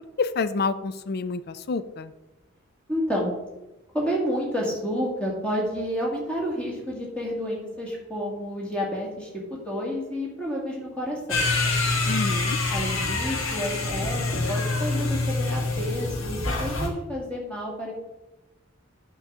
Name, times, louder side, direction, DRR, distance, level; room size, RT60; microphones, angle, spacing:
voice 1, 0.2-2.1 12.1-12.6, left 4 dB, 50° left, 13 dB, 0.4 m, -28 dB
voice 2, 2.9-3.3 3.9-11.4 12.7-14.2 14.5-17.9, equal, 5° left, -3 dB, 2.1 m, -30 dB
sound 1, 11.3-16.9, left 3 dB, 70° left, 1.5 m, -26 dB
8.8 x 3.9 x 6.1 m, 1.0 s
head